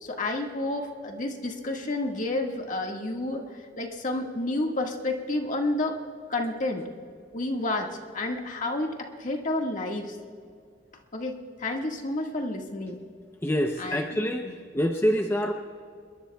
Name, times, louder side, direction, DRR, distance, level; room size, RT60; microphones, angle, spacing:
voice 1, 0.0-6.0 6.3-6.9 7.3-10.2 11.1-13.0 13.8-14.5, left 2 dB, 45° left, 2 dB, 1.8 m, -30 dB
voice 2, 13.4-14.5 14.7-15.5, equal, 15° left, 3 dB, 0.7 m, -25 dB
27.5 x 22.0 x 2.3 m, 2.2 s
head